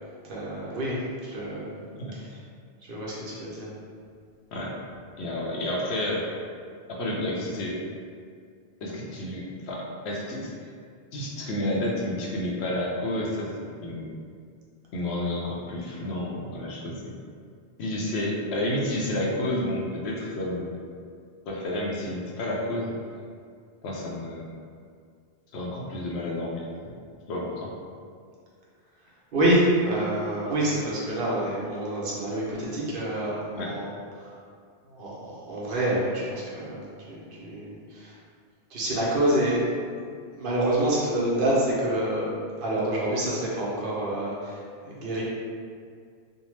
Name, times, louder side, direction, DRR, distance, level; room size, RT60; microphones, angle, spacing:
voice 1, 0.3-1.7 2.1-2.2 2.8-3.7 29.3-34.3 34.9-36.8 37.1-38.1 38.7-39.7 40.3-42.3 42.5-44.6 44.8-45.2, right 1 dB, 60° right, -6 dB, 0.8 m, -27 dB
voice 2, 5.2-6.3 6.9-7.8 8.8-10.5 11.1-13.5 13.8-14.1 14.9-17.2 17.8-20.7 21.5-23.0 23.8-24.5 25.5-27.0 27.3-27.7 33.5-33.7, left 1 dB, 80° left, -3 dB, 0.8 m, -30 dB
2.7 x 2.1 x 3.1 m, 2.2 s
omnidirectional pair, 1.1 m